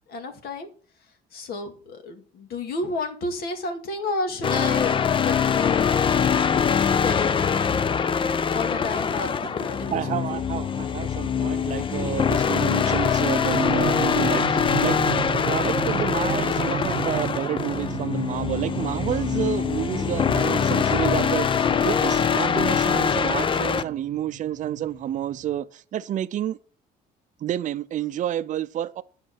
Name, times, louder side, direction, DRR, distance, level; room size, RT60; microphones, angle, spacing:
voice 1, 0.1-0.7 1.3-6.0 7.0-7.5 8.5-10.4, left 3 dB, 65° left, 2.1 m, -31 dB
sound 1, 4.4-23.8, left 7 dB, 30° left, 0.5 m, -23 dB
voice 2, 9.9-15.0 15.4-26.6 27.4-29.0, right 11 dB, 50° right, 0.6 m, -29 dB
sound 2, 13.5-25.6, right 11 dB, 75° right, 0.9 m, -34 dB
11.0 x 5.8 x 6.0 m
cardioid pair, 110°, 17 cm